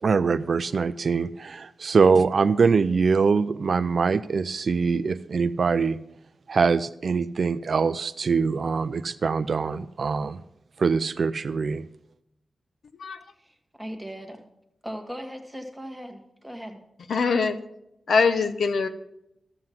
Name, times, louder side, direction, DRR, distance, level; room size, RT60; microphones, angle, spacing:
voice 1, 0.0-6.0 6.5-10.4 10.8-11.8, right 5 dB, 50° right, 13 dB, 0.3 m, -23 dB
voice 2, 13.4-14.5 14.8-16.8, equal, ahead, 3 dB, 1.3 m, -38 dB
voice 3, 17.1-17.6 18.1-18.9, left 4 dB, 65° left, 10 dB, 0.7 m, -22 dB
13.0 x 7.7 x 5.7 m, 0.83 s
wide cardioid pair, 165°, 0 cm